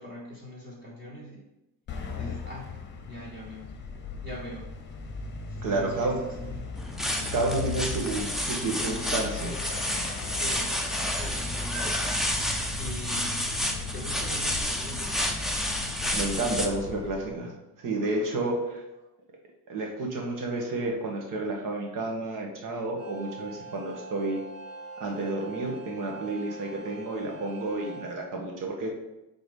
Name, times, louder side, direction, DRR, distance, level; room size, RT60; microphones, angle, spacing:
voice 1, 0.0-1.4 1.9-2.7 3.0-3.7 4.2-4.7 5.5-7.8 10.3-10.7 11.1-11.8 12.8-13.3 13.9-15.3 18.6-18.7, left 1 dB, 30° right, -6 dB, 1.8 m, -42 dB
sound 1, 1.9-17.4, left 3 dB, 30° left, 0.8 m, -37 dB
voice 2, 5.6-6.1 7.3-9.6 16.1-17.5 17.8-18.8 19.7-24.4 25.0-28.9, right 2 dB, 60° right, 1 dB, 1.6 m, -30 dB
sound 2, 6.7-16.7, left 1 dB, ahead, 0.5 m, -30 dB
sound 3, 23.0-28.1, right 3 dB, 85° right, 2.3 m, -43 dB
5.0 x 4.0 x 5.2 m, 0.94 s
cardioid pair, 150°, 36 cm